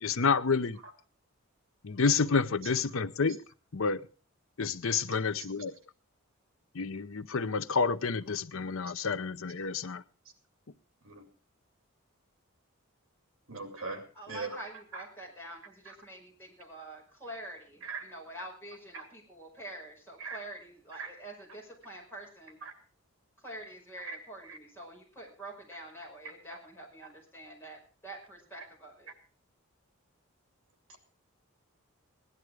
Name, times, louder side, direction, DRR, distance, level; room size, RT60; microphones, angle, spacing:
voice 1, 0.0-0.8 1.8-3.4 3.7-4.1 4.6-5.7 6.7-10.0, left 5 dB, 65° left, 14 dB, 0.7 m, -29 dB
voice 2, 13.5-14.5 14.9-15.0 17.8-18.1 18.9-19.0 20.2-20.4 21.0-21.1 22.6-22.7 24.0-24.2 24.5-24.6, right 4 dB, 65° right, 7 dB, 2.9 m, -39 dB
voice 3, 14.1-22.6 23.4-29.1, right 1 dB, 10° left, -2 dB, 5.6 m, -46 dB
17.0 x 11.0 x 4.8 m, 0.37 s
head